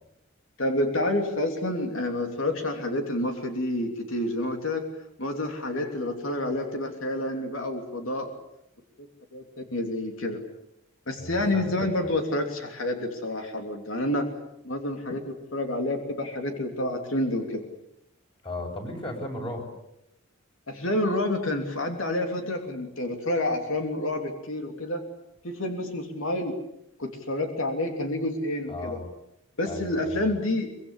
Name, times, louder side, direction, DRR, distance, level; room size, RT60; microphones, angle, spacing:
voice 1, 0.6-4.9 5.2-8.3 9.0-9.4 9.7-10.4 11.1-14.3 14.6-17.6 20.7-25.0 25.4-26.6 27.0-29.0 29.6-30.7, left 1 dB, 80° left, 4 dB, 3.2 m, -29 dB
voice 2, 11.2-11.9 18.4-19.6 28.7-29.1 29.7-30.3, left 1 dB, 25° left, 3 dB, 6.6 m, -35 dB
24.5 x 23.5 x 8.3 m, 0.84 s
head